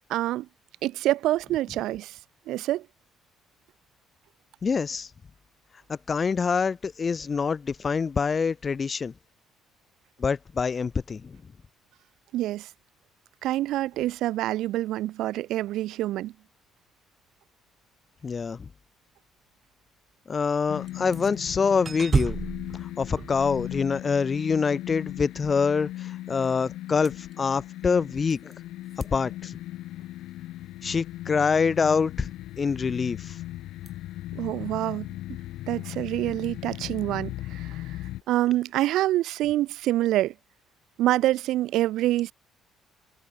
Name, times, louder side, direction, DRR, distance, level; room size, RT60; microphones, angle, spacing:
voice 1, 0.1-0.5 0.8-2.2 2.5-2.9 12.3-12.7 13.4-16.3 34.3-35.1 35.7-38.0 38.3-40.3 41.0-42.3, right 15 dB, 75° right, 0.6 m, -26 dB
voice 2, 4.6-5.1 5.9-9.1 10.2-11.3 18.2-18.7 20.3-22.4 23.0-28.5 29.0-29.6 30.8-32.3 32.6-33.4, left 5 dB, 25° left, 0.5 m, -25 dB
sound 1, 20.7-38.2, left 15 dB, 75° left, 1.6 m, -38 dB
sound 2, 20.9-21.3 21.8-24.2 27.0-27.3 28.3-28.5 28.9-29.1 33.9-34.0, right 5 dB, 25° right, 1.0 m, -31 dB
cardioid pair, 160°, 0 cm